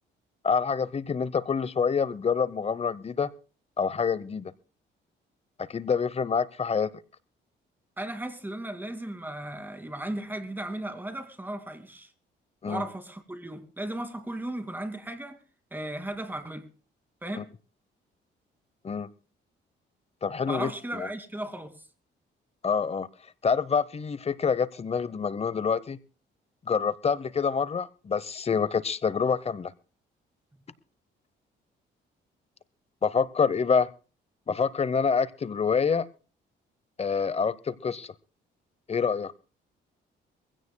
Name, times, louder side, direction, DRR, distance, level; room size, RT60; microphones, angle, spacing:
voice 1, 0.4-3.3 3.8-4.5 5.7-6.9 12.6-12.8 17.4-17.5 18.8-19.1 20.2-21.1 22.6-23.1 23.4-26.0 26.7-29.7 33.0-33.9 34.5-36.1 37.0-38.1 38.9-39.3, left 6 dB, 30° left, 0.8 m, -27 dB
voice 2, 8.0-12.1 12.7-15.4 15.7-16.7 17.2-17.5 20.5-21.8, right 1 dB, 10° right, 2.3 m, -36 dB
23.0 x 16.5 x 2.2 m
cardioid pair, 90°, 20 cm